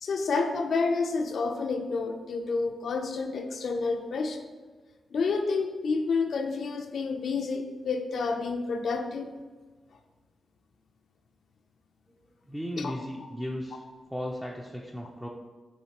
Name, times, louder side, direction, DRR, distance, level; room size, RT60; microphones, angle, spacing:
voice 1, 0.0-4.4 5.1-9.3 12.8-12.9, left 4 dB, 70° left, 4 dB, 0.4 m, -29 dB
voice 2, 12.5-13.8 14.1-15.3, equal, 5° right, -2 dB, 0.4 m, -36 dB
5.7 x 3.1 x 2.9 m, 1.4 s
wide cardioid pair, 100°, 0 cm